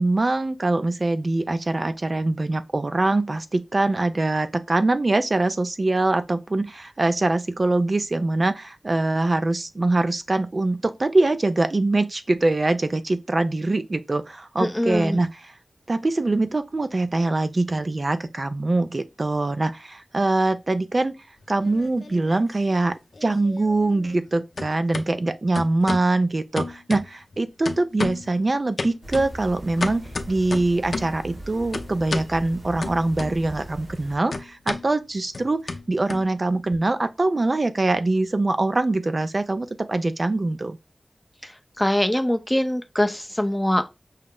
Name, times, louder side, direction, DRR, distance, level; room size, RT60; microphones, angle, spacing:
voice 1, 0.0-15.5 15.9-21.2 21.5-22.9 23.2-40.8, right 2 dB, 50° right, 0.5 m, -23 dB
voice 2, 14.6-15.2 41.8-43.9, left 1 dB, 10° left, 0.6 m, -23 dB
sound 1, 21.4-22.4 22.7-24.3 24.6-25.1 25.6-26.1 26.6-27.4 27.7-28.3 28.8-31.2 31.7-32.3 32.8-33.6 33.9-36.8, left 3 dB, 80° left, 0.5 m, -32 dB
sound 2, 29.0-34.2, right 1 dB, 85° right, 2.9 m, -39 dB
5.5 x 2.0 x 3.7 m
wide cardioid pair, 60°, 0 cm